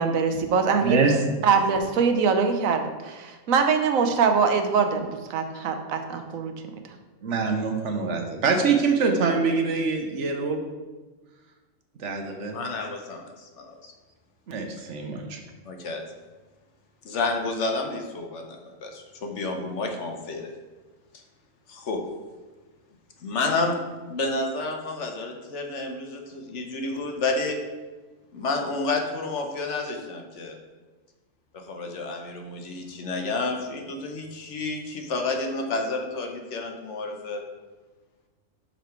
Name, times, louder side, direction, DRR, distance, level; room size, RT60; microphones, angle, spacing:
voice 1, 0.0-1.0 1.4-6.5, right 5 dB, 90° right, 6 dB, 1.1 m, -23 dB
voice 2, 0.8-1.2 7.2-10.6 12.0-12.6 14.5-15.4, right 4 dB, 65° right, 3 dB, 1.1 m, -24 dB
voice 3, 12.5-13.9 15.6-16.0 17.0-20.5 21.7-22.0 23.2-23.8 24.1-27.6 28.3-30.6 31.5-37.4, left 3 dB, 65° left, 3 dB, 1.1 m, -30 dB
5.7 x 5.1 x 4.5 m, 1.3 s
omnidirectional pair, 1.4 m